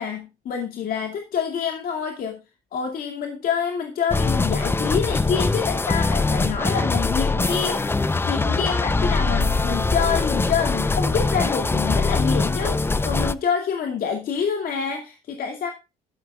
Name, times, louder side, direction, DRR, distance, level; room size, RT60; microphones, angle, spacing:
voice 1, 0.0-2.4 2.7-15.7, left 7 dB, 60° left, 3 dB, 2.4 m, -27 dB
sound 1, 4.1-13.3, left 3 dB, 15° left, 0.6 m, -22 dB
13.0 x 12.5 x 2.4 m, 0.28 s
cardioid pair, 110°, 17 cm